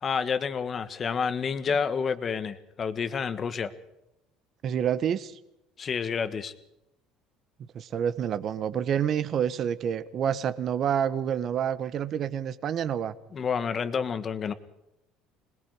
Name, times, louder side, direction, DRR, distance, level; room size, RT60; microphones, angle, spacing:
voice 1, 0.0-3.7 5.8-6.5 13.3-14.5, left 6 dB, 35° left, 12 dB, 1.5 m, -29 dB
voice 2, 4.6-5.4 7.7-13.1, right 9 dB, 45° right, 14 dB, 1.0 m, -28 dB
26.5 x 20.0 x 4.9 m, 0.86 s
cardioid pair, 125°, 0 cm